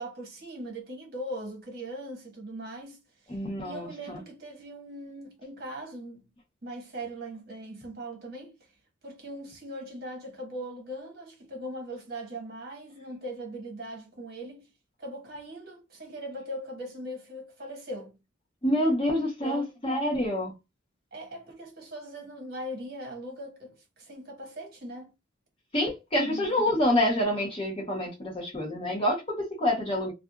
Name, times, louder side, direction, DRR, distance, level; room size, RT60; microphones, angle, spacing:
voice 1, 0.0-3.4 3.6-6.2 6.6-8.5 9.0-14.7 15.0-18.2 19.4-19.7 21.1-25.1 26.2-26.5, right 1 dB, 50° right, 1.2 m, -40 dB
voice 2, 3.3-4.2 18.6-20.5 25.7-30.1, left 1 dB, 25° left, 0.9 m, -27 dB
2.5 x 2.5 x 2.3 m
head